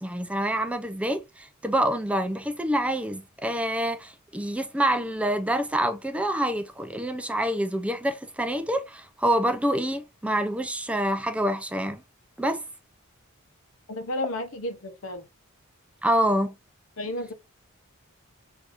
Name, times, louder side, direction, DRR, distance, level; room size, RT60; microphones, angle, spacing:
voice 1, 0.0-12.0 12.4-12.6 16.0-16.5, right 1 dB, 5° right, 0.4 m, -26 dB
voice 2, 13.9-15.3 17.0-17.3, left 1 dB, 60° left, 0.8 m, -32 dB
6.2 x 2.7 x 2.5 m
head